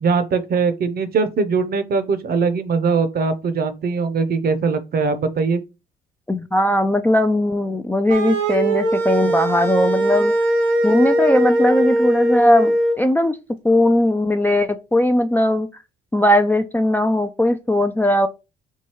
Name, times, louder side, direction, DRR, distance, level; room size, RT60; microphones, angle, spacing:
voice 1, 0.0-5.6, right 4 dB, 45° right, 0.7 m, -21 dB
voice 2, 6.3-10.3 10.8-13.4 13.6-15.7 16.1-18.3, left 1 dB, 10° left, 0.3 m, -18 dB
sound 1, 8.1-12.9, right 1 dB, 75° right, 1.1 m, -19 dB
4.6 x 2.6 x 2.9 m
supercardioid pair, 65°, 21 cm